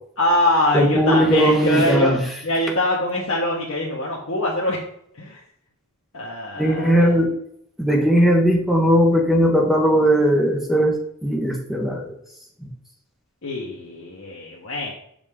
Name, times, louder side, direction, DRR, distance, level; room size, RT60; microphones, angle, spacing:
voice 1, 0.2-2.2 2.4-4.8 5.2-5.4 6.1-7.1 13.4-14.9, left 1 dB, 60° left, -4 dB, 1.1 m, -23 dB
voice 2, 0.7-2.2 6.6-7.3 7.8-10.9 11.2-12.2, equal, ahead, 0 dB, 1.0 m, -18 dB
6.3 x 5.1 x 3.6 m, 0.71 s
head